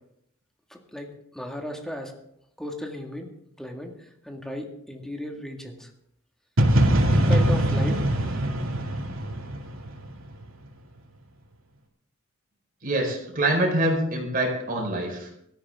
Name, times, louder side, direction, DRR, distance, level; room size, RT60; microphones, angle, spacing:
voice 1, 0.7-2.1 2.6-3.3 3.6-5.9 7.1-8.3, left 1 dB, 5° left, 2 dB, 2.0 m, -35 dB
sound 1, 6.6-10.4, right 1 dB, 90° right, 2.5 m, -22 dB
voice 2, 12.8-15.3, right 1 dB, 45° right, 1 dB, 4.7 m, -25 dB
17.0 x 13.5 x 3.7 m, 0.72 s
head